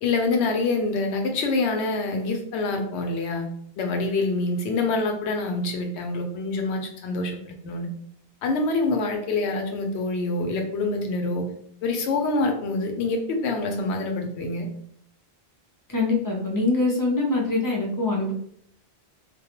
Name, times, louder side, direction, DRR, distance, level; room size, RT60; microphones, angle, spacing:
voice 1, 0.0-3.5 3.8-7.9 8.4-11.5 11.8-14.7, left 3 dB, 80° left, 3 dB, 0.8 m, -26 dB
voice 2, 15.9-18.3, left 3 dB, 35° left, -2 dB, 0.3 m, -24 dB
2.3 x 2.1 x 2.9 m, 0.65 s
omnidirectional pair, 1.1 m